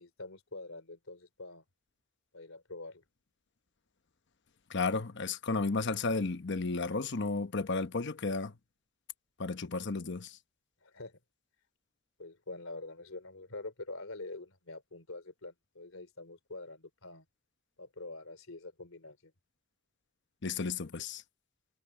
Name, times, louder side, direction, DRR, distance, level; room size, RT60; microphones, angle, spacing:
voice 1, 0.0-1.6 2.3-3.0 10.8-11.2 12.2-17.3 17.8-19.3, left 2 dB, 75° left, 3.4 m, -45 dB
voice 2, 4.7-8.5 9.4-10.3 20.4-21.2, left 3 dB, 60° left, 1.0 m, -33 dB
head